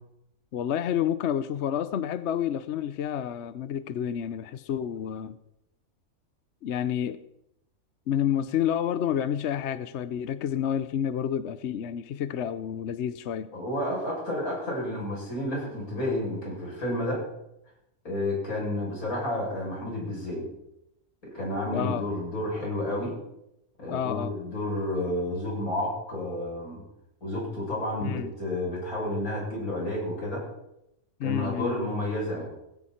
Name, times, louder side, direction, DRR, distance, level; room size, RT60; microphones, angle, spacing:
voice 1, 0.5-5.3 6.6-7.2 8.1-13.5 21.7-22.1 23.9-24.3 28.0-28.3 31.2-31.8, left 9 dB, 60° left, 13 dB, 0.9 m, -29 dB
voice 2, 13.5-17.2 18.0-20.5 21.2-23.2 23.8-26.8 27.2-30.5 31.2-32.5, left 1 dB, 85° left, -3 dB, 7.8 m, -31 dB
18.5 x 15.5 x 4.4 m, 0.84 s
omnidirectional pair, 1.5 m